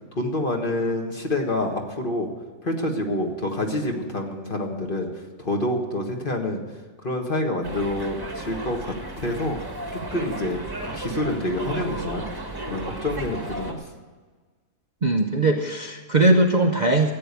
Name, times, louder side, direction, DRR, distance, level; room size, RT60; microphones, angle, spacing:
voice 1, 0.2-2.3 2.6-5.1 5.4-6.6 7.0-9.6 10.1-12.3 12.7-13.8, left 1 dB, 35° left, 2 dB, 1.7 m, -27 dB
sound 1, 7.6-13.7, right 1 dB, 15° right, 1.3 m, -34 dB
voice 2, 15.0-17.1, right 2 dB, 40° right, 3 dB, 0.7 m, -20 dB
14.0 x 8.7 x 8.3 m, 1.4 s
omnidirectional pair, 1.6 m